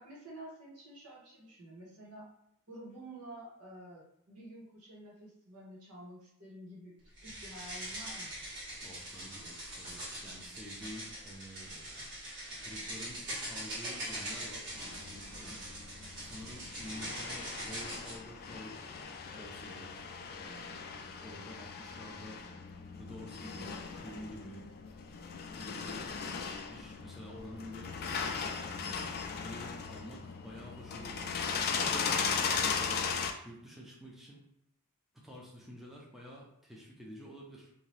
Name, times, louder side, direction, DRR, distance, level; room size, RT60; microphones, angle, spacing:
voice 1, 0.0-2.3 2.7-8.4, right 1 dB, 80° right, -5 dB, 1.4 m, -50 dB
sound 1, 7.2-18.2, right 1 dB, 55° right, 1.4 m, -42 dB
voice 2, 8.8-12.0 12.6-15.6 16.2-18.8 19.4-22.4 23.0-24.7 25.5-26.0 26.5-27.9 28.6-33.1 33.4-34.4 35.1-37.7, equal, ahead, -4 dB, 0.6 m, -49 dB
sound 2, 14.7-33.3, left 5 dB, 45° left, 0.4 m, -38 dB
2.8 x 2.6 x 3.2 m, 0.77 s
head